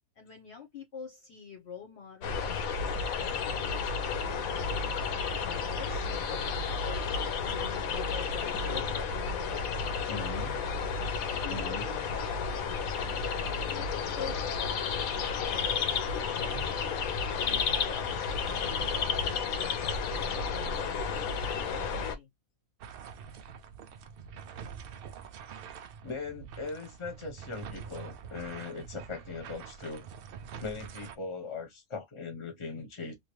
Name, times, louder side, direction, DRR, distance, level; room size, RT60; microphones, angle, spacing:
voice 1, 0.2-4.9 5.4-6.6 7.3-10.3 11.3-12.9 13.6-17.0 17.4-22.3, left 6 dB, 50° left, 1.0 m, -47 dB
sound 1, 2.2-22.2, left 5 dB, 75° left, 1.1 m, -32 dB
voice 2, 10.1-10.6 11.5-11.8 16.5-16.7 21.1-21.2 26.0-30.1 30.6-33.1, left 4 dB, 25° left, 0.9 m, -39 dB
sound 2, 22.8-31.2, right 7 dB, 80° right, 0.5 m, -45 dB
3.0 x 2.5 x 3.0 m
omnidirectional pair, 1.5 m